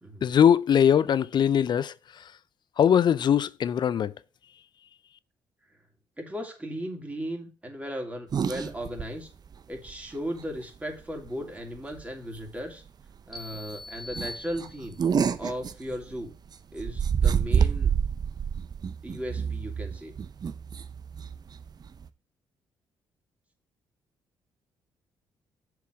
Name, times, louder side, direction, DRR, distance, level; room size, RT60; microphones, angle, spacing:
voice 1, 0.2-2.2 2.8-4.1, left 8 dB, 55° left, 0.5 m, -21 dB
voice 2, 6.2-9.3 9.7-12.8 13.2-15.0 15.4-16.3 16.7-17.9 19.0-20.1, equal, 15° right, 3.0 m, -36 dB
sound 1, 8.3-9.1 9.5-9.6 9.9-10.0 11.2-11.5 11.8-12.0 12.5-12.6 12.9-13.0 13.4-13.6 14.1-16.3 16.8-22.1, right 7 dB, 45° right, 0.7 m, -28 dB
sound 2, 13.3-15.2, left 2 dB, ahead, 2.1 m, -42 dB
6.9 x 4.8 x 6.2 m
supercardioid pair, 55°, 9 cm